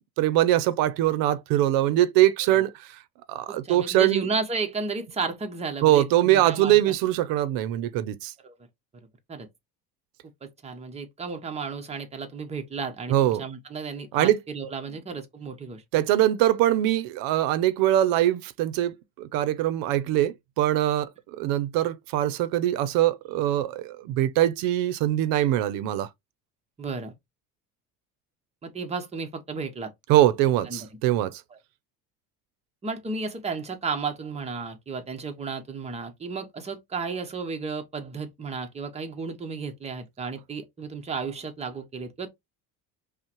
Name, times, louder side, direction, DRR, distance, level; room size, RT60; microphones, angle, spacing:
voice 1, 0.2-3.0 3.3-4.3 5.8-8.3 13.1-13.4 14.1-14.4 15.9-26.1 30.1-31.4, right 13 dB, 85° right, 0.6 m, -23 dB
voice 2, 3.5-6.9 8.4-8.5 9.3-9.5 10.4-15.8 26.8-27.1 28.6-29.9 30.7-30.9 32.8-42.3, right 4 dB, 20° right, 0.8 m, -33 dB
5.4 x 2.1 x 2.9 m
cardioid pair, 125°, 34 cm